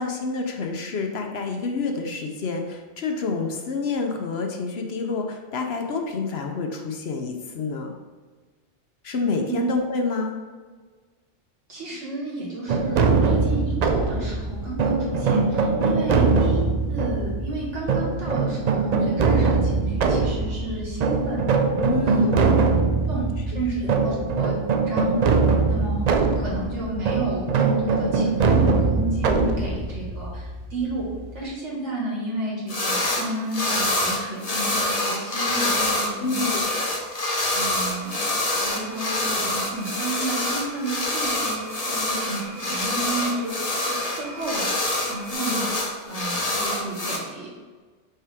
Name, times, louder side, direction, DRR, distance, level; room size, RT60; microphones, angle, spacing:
voice 1, 0.0-7.9 9.0-10.4 16.2-16.4 21.8-22.5 23.5-23.6 24.1-24.3 36.1-36.7, left 4 dB, 65° left, 3 dB, 0.9 m, -28 dB
voice 2, 11.7-21.4 22.0-22.3 23.1-25.2 25.7-26.1 26.3-31.1 31.3-36.6 37.5-43.6 43.8-44.7 45.1-45.7 46.1-47.5, right 2 dB, 80° right, -4 dB, 2.1 m, -32 dB
sound 1, 12.7-31.4, right 4 dB, 60° right, 0.4 m, -22 dB
sound 2, 32.7-33.3 33.5-47.2, left 1 dB, 35° left, 0.9 m, -26 dB
sound 3, 37.5-45.3, right 1 dB, 5° left, 1.4 m, -42 dB
5.6 x 4.8 x 3.5 m, 1.4 s
omnidirectional pair, 1.2 m